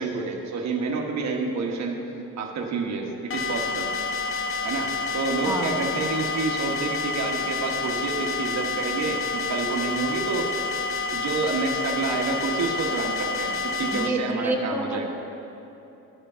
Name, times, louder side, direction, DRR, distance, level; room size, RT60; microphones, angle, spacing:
voice 1, 0.0-2.0 2.4-3.9 4.6-10.5 11.1-15.0, right 4 dB, 65° right, 1 dB, 1.2 m, -29 dB
sound 1, 3.3-14.1, left 4 dB, 45° left, 0.6 m, -29 dB
voice 2, 13.9-15.0, right 2 dB, 5° right, 0 dB, 1.1 m, -28 dB
12.0 x 5.1 x 5.6 m, 2.9 s
cardioid pair, 90°, 30 cm